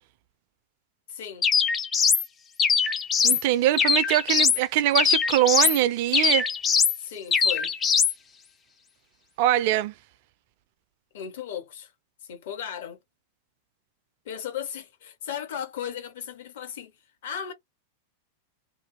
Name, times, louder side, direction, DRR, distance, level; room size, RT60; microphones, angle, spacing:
voice 1, 1.1-1.5 7.0-7.7 11.1-11.9 12.3-13.0 14.2-16.9 17.2-17.5, left 9 dB, 55° left, 1.2 m, -36 dB
sound 1, 1.4-2.2 2.6-3.4 3.8-4.6 4.9-5.8 6.1-7.0 7.3-8.1, left 6 dB, 20° left, 0.7 m, -22 dB
voice 2, 3.2-6.5 9.4-9.9, right 13 dB, 50° right, 0.3 m, -23 dB
2.6 x 2.3 x 3.1 m
figure-of-eight pair, 90°, 0 cm